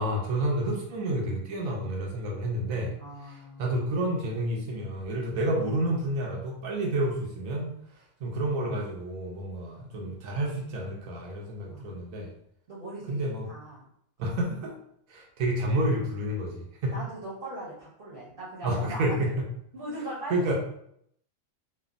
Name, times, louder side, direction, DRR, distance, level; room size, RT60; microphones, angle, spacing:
voice 1, 0.0-2.9 3.3-7.7 8.2-12.3 13.1-13.4 14.2-14.7 15.1-17.0 18.6-19.5 20.3-20.5, right 1 dB, 85° right, 0 dB, 1.1 m, -29 dB
voice 2, 3.0-3.8 11.7-11.9 12.7-13.8 16.8-19.2 19.7-20.5, right 1 dB, 50° right, -6 dB, 0.8 m, -39 dB
3.2 x 2.2 x 2.4 m, 0.71 s
omnidirectional pair, 1.4 m